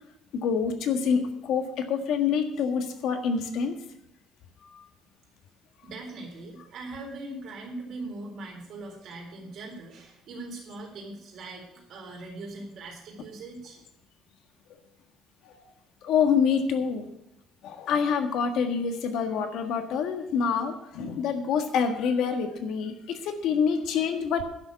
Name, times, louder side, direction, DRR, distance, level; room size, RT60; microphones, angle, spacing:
voice 1, 0.3-3.8 4.7-4.8 15.4-15.5 16.0-17.1 17.6-24.4, left 6 dB, 60° left, 6 dB, 1.6 m, -26 dB
voice 2, 5.8-13.8, right 2 dB, 50° right, 0 dB, 3.9 m, -41 dB
11.0 x 6.5 x 8.3 m, 0.81 s
cardioid pair, 175°, 0 cm